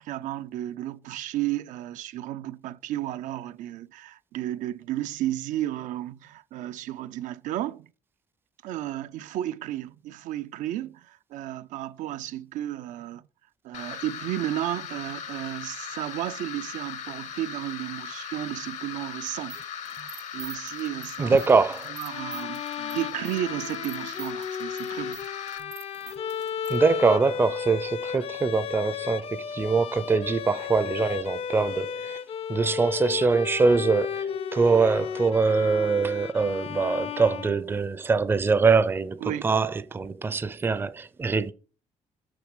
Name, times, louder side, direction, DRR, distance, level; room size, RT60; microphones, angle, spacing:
voice 1, 0.0-7.9 8.6-13.2 13.6-19.6 19.9-21.5 21.9-25.2 39.2-39.5, right 13 dB, 90° right, 0.4 m, -33 dB
sound 1, 13.7-25.6, left 8 dB, 70° left, 1.0 m, -38 dB
sound 2, 19.3-26.8, right 9 dB, 65° right, 0.8 m, -46 dB
voice 2, 21.2-21.8 26.7-32.2 32.5-41.5, right 4 dB, 15° right, 0.4 m, -23 dB
Bowed string instrument, 22.0-38.0, left 8 dB, 50° left, 0.5 m, -34 dB
6.4 x 6.2 x 5.0 m
cardioid pair, 135°, 13 cm